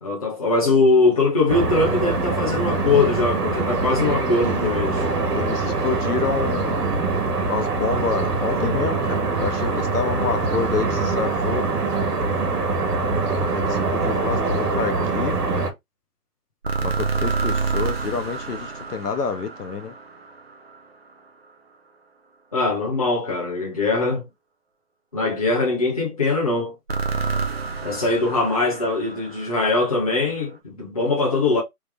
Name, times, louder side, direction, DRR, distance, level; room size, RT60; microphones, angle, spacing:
voice 1, 0.0-5.1 22.5-24.3 25.1-26.7 27.8-31.6, left 3 dB, 25° left, 0.8 m, -21 dB
sound 1, 1.5-15.7, right 3 dB, 85° right, 1.3 m, -23 dB
voice 2, 5.3-6.9 7.5-11.7 13.4-15.6 16.8-19.9, left 5 dB, 80° left, 1.0 m, -28 dB
sound 2, 16.6-20.7 26.9-30.0, right 4 dB, 40° right, 0.6 m, -28 dB
3.4 x 2.0 x 3.4 m
hypercardioid pair, 170°, 46 cm